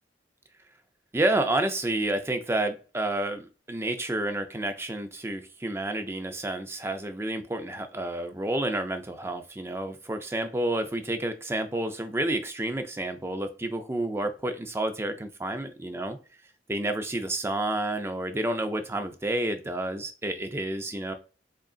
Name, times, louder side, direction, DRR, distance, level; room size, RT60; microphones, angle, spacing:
voice 1, 1.1-16.2 16.7-21.1, right 1 dB, 15° right, 7 dB, 0.4 m, -30 dB
3.8 x 3.5 x 2.4 m, 0.35 s
head